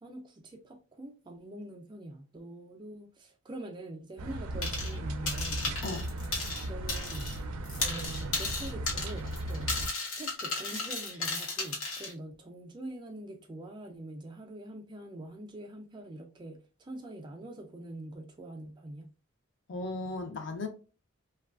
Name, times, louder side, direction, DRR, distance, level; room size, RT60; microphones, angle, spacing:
voice 1, 0.0-5.8 6.7-7.3 7.8-9.7 10.2-19.1, right 1 dB, 20° right, 0.3 m, -44 dB
sound 1, 4.2-9.9, right 1 dB, 90° right, 0.4 m, -37 dB
sound 2, 4.6-5.0 5.3-7.4 7.6-12.1, left 3 dB, 80° left, 0.9 m, -34 dB
voice 2, 19.7-20.7, left 2 dB, 55° left, 0.5 m, -36 dB
3.0 x 2.3 x 2.3 m
head